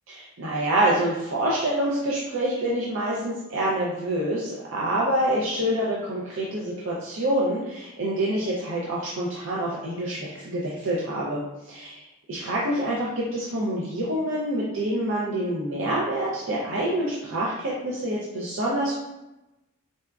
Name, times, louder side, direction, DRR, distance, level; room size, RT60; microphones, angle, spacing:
voice 1, 0.1-12.0 12.3-19.0, right 1 dB, 70° right, -5 dB, 0.5 m, -26 dB
4.0 x 2.4 x 2.2 m, 0.96 s
head